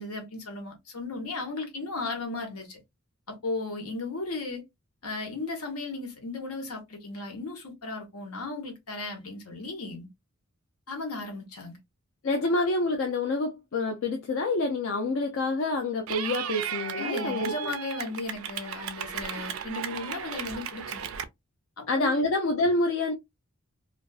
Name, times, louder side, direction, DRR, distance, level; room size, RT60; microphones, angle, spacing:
voice 1, 0.0-2.8 3.3-4.6 5.0-10.1 10.9-11.8 17.0-21.1 21.8-22.3, left 3 dB, 80° left, 1.0 m, -35 dB
voice 2, 12.2-17.7 21.9-23.1, left 2 dB, 60° left, 0.4 m, -27 dB
Clapping / Cheering, 16.1-21.3, right 8 dB, 65° right, 0.4 m, -35 dB
2.5 x 2.3 x 2.3 m
head